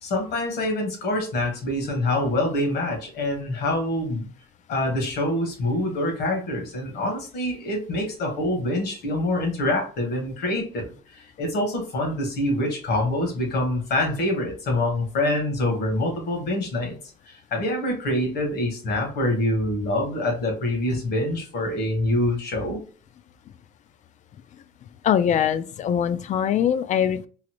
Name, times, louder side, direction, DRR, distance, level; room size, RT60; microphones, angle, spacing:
voice 1, 0.0-4.3 4.7-17.0 17.3-22.8, left 1 dB, 70° left, 2 dB, 1.4 m, -25 dB
voice 2, 25.0-27.3, left 9 dB, 45° left, 14 dB, 0.4 m, -22 dB
3.9 x 2.0 x 2.9 m, 0.40 s
cardioid pair, 110°, 17 cm